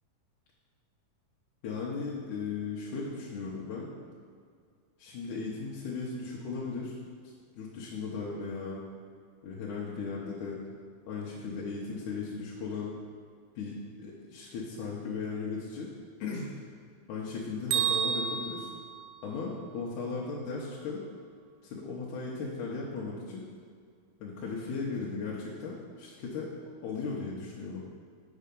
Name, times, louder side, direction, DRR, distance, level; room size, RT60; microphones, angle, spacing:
voice 1, 1.6-3.9 5.0-7.0 7.6-8.8 9.4-10.6 11.1-12.9 13.6-15.9 16.2-16.5 17.1-18.7 19.2-21.0 21.6-23.4 24.2-26.5 26.8-27.8, left 4 dB, 70° left, -5 dB, 2.0 m, -37 dB
Bell, 17.7-19.7, right 7 dB, 85° right, 2.5 m, -31 dB
7.4 x 5.6 x 5.2 m, 2.1 s
omnidirectional pair, 4.4 m